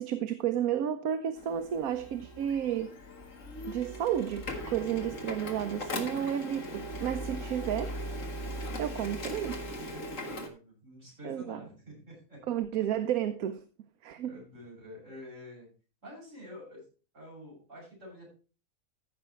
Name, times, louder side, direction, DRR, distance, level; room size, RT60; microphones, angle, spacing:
voice 1, 0.0-2.9 3.6-8.0 8.8-9.6 11.2-11.6 12.5-13.6 14.0-14.4, right 10 dB, 75° right, 9 dB, 1.2 m, -32 dB
Printer, 1.4-10.5, equal, 60° left, 2.0 m, -39 dB
voice 2, 9.7-12.4 14.2-15.7 16.0-16.9 17.1-18.3, left 1 dB, 55° right, -4 dB, 7.4 m, -48 dB
14.5 x 6.1 x 4.4 m, 0.35 s
omnidirectional pair, 1.5 m